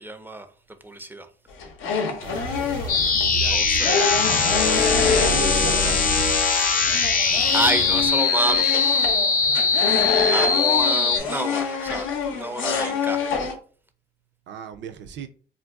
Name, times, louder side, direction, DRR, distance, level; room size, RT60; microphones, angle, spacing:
voice 1, 0.0-0.5 0.8-1.3 3.5-4.1 4.9-5.2 7.5-9.1 10.3-13.3, right 2 dB, 10° right, 0.4 m, -29 dB
sound 1, 1.5-3.3 3.8-6.4 6.6-13.5, left 5 dB, 85° left, 0.6 m, -26 dB
sound 2, 2.2-8.1, right 3 dB, 85° right, 1.2 m, -33 dB
sound 3, 2.9-11.2, left 5 dB, 45° left, 0.6 m, -21 dB
voice 2, 3.3-4.4 5.2-6.0 14.5-15.3, right 8 dB, 65° right, 0.5 m, -36 dB
2.5 x 2.2 x 3.4 m
cardioid pair, 90°, 20 cm